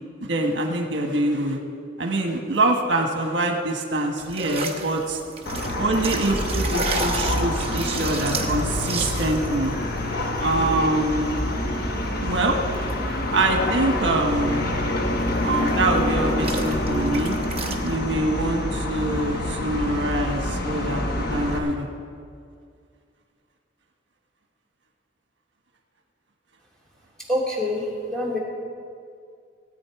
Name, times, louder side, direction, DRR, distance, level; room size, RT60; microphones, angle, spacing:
voice 1, 0.2-1.6 2.0-5.2 5.8-9.8 10.4-11.4 12.2-12.6 13.3-14.7 15.4-17.4 17.8-21.0 21.3-21.9, right 2 dB, 80° right, 3 dB, 1.3 m, -24 dB
sound 1, 4.2-18.0, right 4 dB, 30° right, 1.0 m, -36 dB
sound 2, 5.5-21.6, left 1 dB, 55° left, 1.1 m, -26 dB
voice 2, 27.3-28.4, left 1 dB, 5° left, -5 dB, 2.8 m, -25 dB
18.0 x 9.0 x 4.8 m, 2.2 s
head